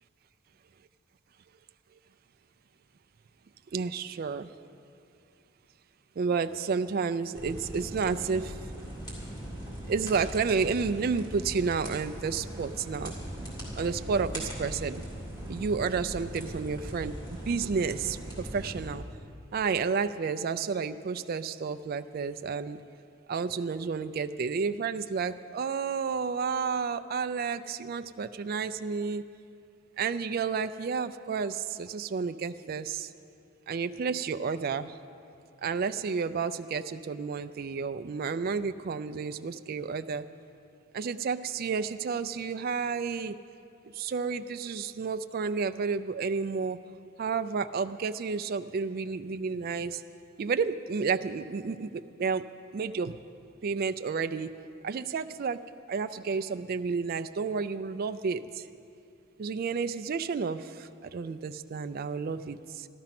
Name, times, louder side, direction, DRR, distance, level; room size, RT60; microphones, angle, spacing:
voice 1, 3.7-4.5 6.2-8.6 9.9-13.1 13.8-15.0 15.5-19.0 19.5-22.8 23.3-29.2 30.0-33.1 33.7-35.0 35.6-40.2 40.9-43.3 43.9-46.8 47.2-50.0 50.4-52.5 52.7-53.2 53.6-54.5 54.8-55.6 55.9-58.7 59.4-62.9, right 5 dB, 45° right, 10 dB, 0.3 m, -31 dB
sound 1, 7.4-18.9, equal, 20° left, 3.0 m, -40 dB
13.0 x 12.5 x 5.9 m, 2.5 s
head